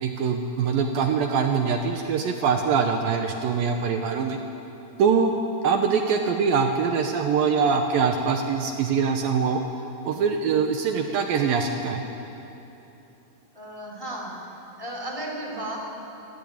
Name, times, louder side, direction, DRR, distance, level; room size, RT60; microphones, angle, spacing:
voice 1, 0.0-4.4 5.0-5.3 5.6-9.6 10.0-12.0, right 6 dB, 70° right, 4 dB, 2.5 m, -23 dB
voice 2, 13.5-14.3 14.8-15.8, right 1 dB, 10° left, 0 dB, 2.1 m, -34 dB
24.5 x 14.5 x 8.7 m, 3.0 s
omnidirectional pair, 4.7 m